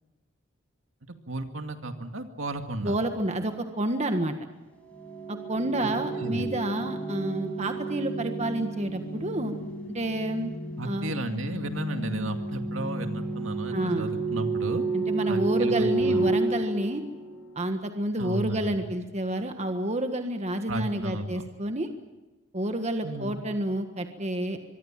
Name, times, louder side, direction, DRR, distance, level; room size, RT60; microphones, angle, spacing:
voice 1, 1.1-2.9 5.8-6.5 10.8-14.8 15.3-16.2 18.2-18.9 20.7-21.5 23.0-23.4, right 2 dB, 70° right, 6 dB, 2.3 m, -34 dB
voice 2, 2.8-4.3 5.3-9.5 9.9-10.5 10.8-11.1 13.7-14.1 14.9-17.0 17.5-21.9 22.5-24.6, right 1 dB, 35° right, 6 dB, 1.6 m, -29 dB
sound 1, 4.8-17.6, right 2 dB, 5° left, 5.7 m, -31 dB
25.0 x 23.5 x 7.5 m, 1.1 s
head